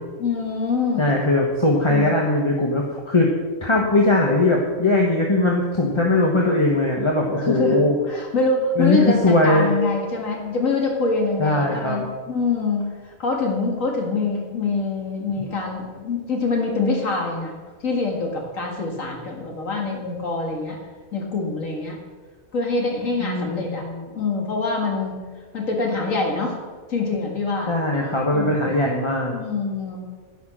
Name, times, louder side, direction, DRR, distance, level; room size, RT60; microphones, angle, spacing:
voice 1, 0.0-1.1 1.9-2.2 7.3-17.6 17.8-20.8 21.1-22.0 22.5-23.8 24.1-25.2 25.5-26.6 26.9-27.7 28.3-28.7 29.3-30.0, left 3 dB, 80° left, 0 dB, 2.4 m, -25 dB
voice 2, 1.0-3.3 3.6-7.9 8.8-9.7 11.4-12.0 23.2-24.0 27.7-29.4, left 2 dB, 25° left, -1 dB, 1.3 m, -20 dB
10.5 x 9.8 x 6.2 m, 1.4 s
omnidirectional pair, 1.4 m